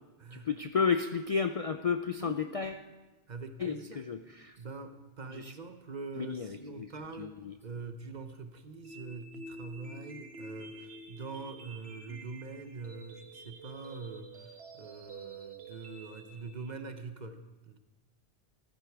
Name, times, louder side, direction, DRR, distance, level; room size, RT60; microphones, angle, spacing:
voice 1, 0.3-2.8 3.6-4.6 5.3-5.5 6.2-6.9 7.2-7.5, left 6 dB, 50° left, 8 dB, 0.4 m, -32 dB
voice 2, 3.3-4.0 4.6-17.8, right 3 dB, 45° right, 9 dB, 0.9 m, -44 dB
sound 1, 8.8-16.8, right 2 dB, 75° right, 1.4 m, -48 dB
14.0 x 13.5 x 4.7 m, 1.2 s
omnidirectional pair, 1.1 m